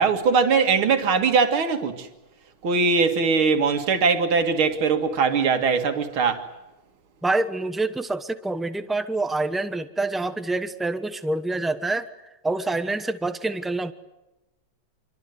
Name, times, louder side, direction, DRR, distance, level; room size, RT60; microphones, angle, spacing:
voice 1, 0.0-2.1 2.6-6.4, right 5 dB, 80° right, 2.7 m, -21 dB
voice 2, 7.2-12.1 12.4-13.9, right 2 dB, ahead, 0.4 m, -26 dB
27.0 x 23.5 x 8.0 m
omnidirectional pair, 2.3 m